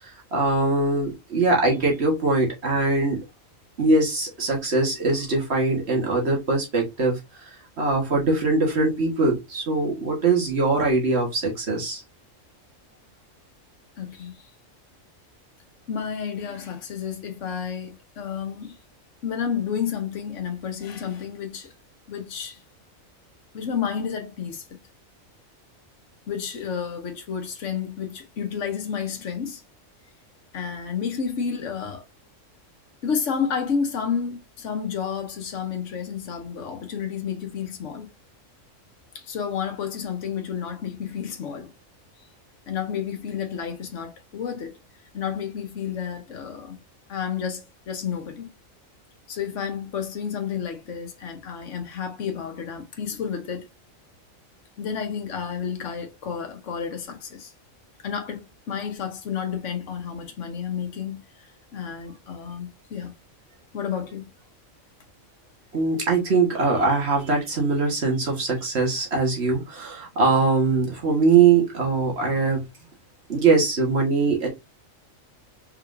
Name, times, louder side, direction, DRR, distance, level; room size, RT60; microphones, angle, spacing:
voice 1, 0.3-3.2 3.8-7.5 7.8-12.0 65.7-72.6 73.3-74.5, right 3 dB, 50° right, 1.6 m, -22 dB
voice 2, 14.0-14.4 15.9-18.8 19.2-21.7 22.1-22.6 23.5-24.8 26.3-29.6 30.5-32.0 33.0-38.1 39.1-41.7 42.7-44.8 45.1-46.8 47.1-48.5 49.3-53.7 54.8-57.5 58.0-63.1 63.7-64.3, left 7 dB, 65° left, 1.3 m, -31 dB
4.5 x 3.6 x 2.6 m
omnidirectional pair, 1.4 m